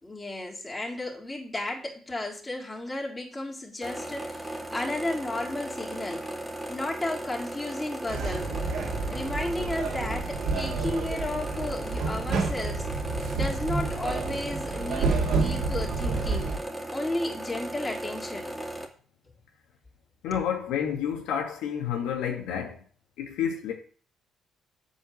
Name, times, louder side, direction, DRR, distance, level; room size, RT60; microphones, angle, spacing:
voice 1, 0.0-6.3 6.7-8.5 9.1-12.9 13.3-16.5 16.9-18.6, left 1 dB, 20° left, 3.5 m, -33 dB
sound 1, 3.8-18.9, right 1 dB, 10° right, 2.5 m, -37 dB
sound 2, 8.1-16.6, right 4 dB, 65° right, 2.6 m, -29 dB
voice 2, 20.2-22.8 23.2-23.7, left 8 dB, 70° left, 2.3 m, -29 dB
8.0 x 5.5 x 7.8 m
hypercardioid pair, 45°, 0 cm